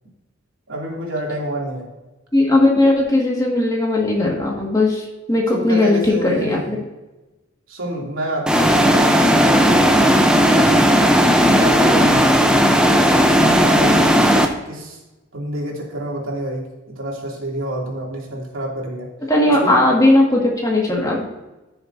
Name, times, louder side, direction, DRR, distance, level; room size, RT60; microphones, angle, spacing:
voice 1, 0.7-1.9 5.5-6.9 7.7-10.5 11.3-12.6 13.3-14.2 14.6-15.0 15.3-19.1 19.4-19.8, right 1 dB, 75° right, -2 dB, 2.8 m, -28 dB
voice 2, 2.3-6.8 19.3-21.2, left 2 dB, 15° left, -2 dB, 1.9 m, -17 dB
sound 1, 8.5-14.5, equal, 5° right, 0.7 m, -14 dB
15.0 x 6.7 x 2.7 m, 1.1 s
head